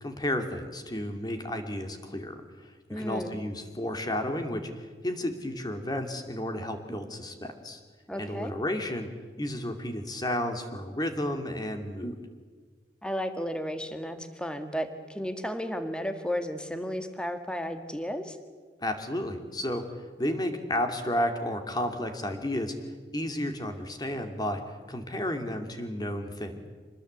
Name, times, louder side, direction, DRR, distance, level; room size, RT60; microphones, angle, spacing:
voice 1, 0.0-2.4 2.9-7.8 8.2-9.1 9.4-12.2 18.8-19.8 20.2-22.8 23.1-26.7, left 1 dB, 25° left, 6 dB, 2.6 m, -32 dB
voice 2, 2.9-3.3 8.1-8.5 13.0-18.4, equal, 5° left, 8 dB, 1.8 m, -33 dB
26.5 x 20.0 x 8.2 m, 1.5 s
head